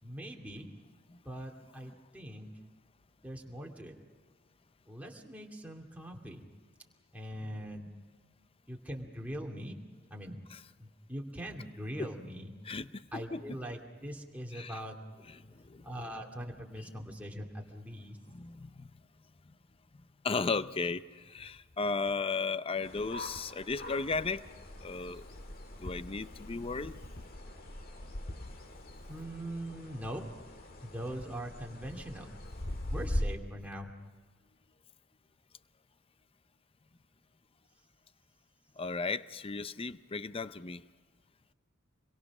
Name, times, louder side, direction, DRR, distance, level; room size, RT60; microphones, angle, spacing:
voice 1, 0.0-0.7 1.2-2.5 3.2-4.0 4.9-6.4 7.1-7.9 8.7-9.8 10.1-10.4 10.8-12.5 13.1-15.0 15.8-18.2 29.1-30.2 30.8-32.3 32.9-33.9, equal, 5° right, 0 dB, 2.6 m, -42 dB
voice 2, 12.6-13.6 14.5-14.8 15.3-15.9 18.3-18.9 20.2-24.4 24.8-25.2 25.8-27.0 38.8-40.8, left 4 dB, 25° left, 14 dB, 0.6 m, -35 dB
sound 1, 22.8-33.2, left 1 dB, 45° left, 1.9 m, -41 dB
27.0 x 22.5 x 6.2 m, 1.5 s
head